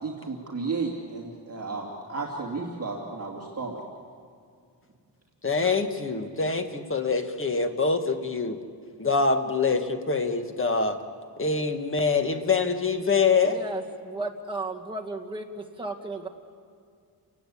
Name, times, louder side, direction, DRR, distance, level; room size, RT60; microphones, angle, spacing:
voice 1, 0.0-3.8, right 4 dB, 35° right, -3 dB, 2.5 m, -33 dB
voice 2, 5.4-8.6 9.0-11.0 11.4-13.6, left 4 dB, 30° left, 6 dB, 1.6 m, -25 dB
voice 3, 13.4-16.3, right 2 dB, 10° right, 0 dB, 1.9 m, -34 dB
30.0 x 19.0 x 8.5 m, 2.2 s
wide cardioid pair, 150°, 42 cm